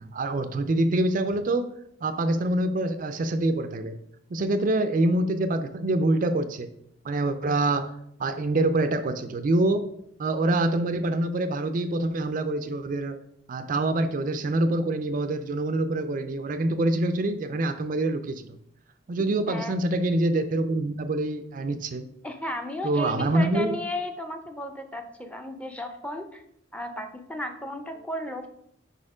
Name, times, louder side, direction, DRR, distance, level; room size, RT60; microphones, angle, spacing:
voice 1, 0.0-1.7 2.0-4.0 4.3-6.7 7.0-7.9 8.2-9.9 10.2-13.2 13.5-18.6 19.1-22.1 22.8-23.7, right 2 dB, 45° right, 10 dB, 0.4 m, -25 dB
voice 2, 22.2-26.4 26.7-28.5, left 1 dB, 5° left, 5 dB, 0.5 m, -34 dB
5.1 x 4.3 x 4.8 m, 0.73 s
head